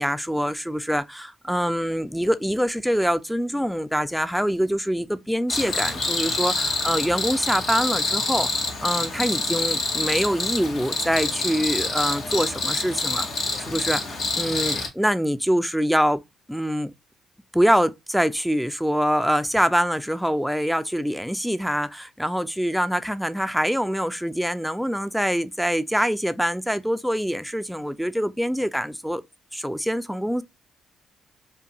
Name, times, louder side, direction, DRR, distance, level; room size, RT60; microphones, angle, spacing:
voice 1, 0.0-6.5 6.8-13.3 13.6-16.2 16.5-16.9 17.5-29.2 29.5-30.4, equal, ahead, 0.3 m, -24 dB
Cricket, 5.5-14.9, left 3 dB, 65° left, 0.8 m, -27 dB
2.6 x 2.4 x 2.8 m
cardioid pair, 90°, 0 cm